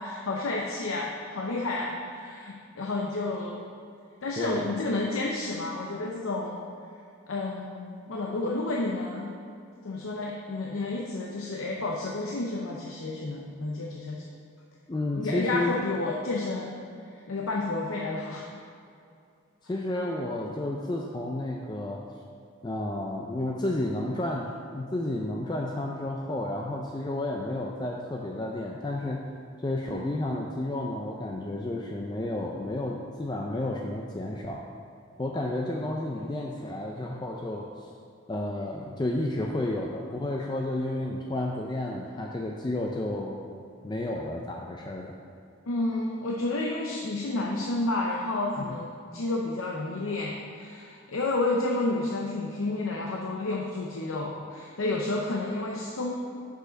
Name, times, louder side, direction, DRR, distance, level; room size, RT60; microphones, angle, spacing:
voice 1, 0.0-3.6 4.2-6.6 7.3-9.3 9.8-14.2 15.1-16.8 17.3-18.5 45.7-48.9 49.1-56.2, left 2 dB, 85° left, -2 dB, 0.7 m, -30 dB
voice 2, 14.9-15.8 19.6-22.0 22.6-29.2 29.6-34.6 35.2-37.9 38.3-43.4 43.8-45.2 48.6-48.7, left 1 dB, 20° left, 0 dB, 0.4 m, -31 dB
6.4 x 5.2 x 5.1 m, 2.4 s
head